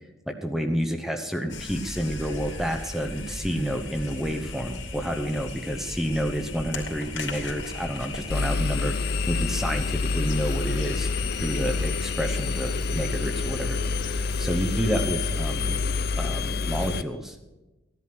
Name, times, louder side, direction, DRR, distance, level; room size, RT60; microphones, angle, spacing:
voice 1, 0.3-11.1 11.4-15.7 16.2-17.4, equal, ahead, 4 dB, 0.8 m, -29 dB
sound 1, 1.5-16.3, left 2 dB, 65° left, 2.6 m, -37 dB
Engine, 8.3-17.0, left 4 dB, 50° left, 0.6 m, -27 dB
15.5 x 11.0 x 6.0 m, 1.1 s
head